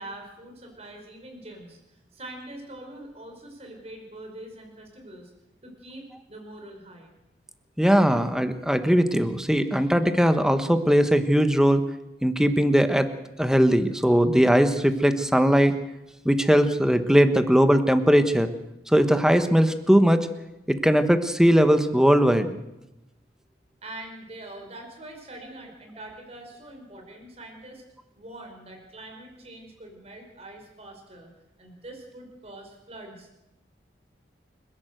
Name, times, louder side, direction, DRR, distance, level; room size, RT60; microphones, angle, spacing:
voice 1, 0.0-5.3 5.6-7.1 23.8-27.8 28.1-31.3 31.6-33.3, right 1 dB, 35° right, 3 dB, 5.0 m, -43 dB
voice 2, 7.8-11.8 12.2-13.1 13.4-15.7 16.2-18.5 18.9-20.3 20.7-22.6, equal, 5° right, 9 dB, 1.2 m, -20 dB
29.0 x 11.5 x 8.0 m, 0.95 s
head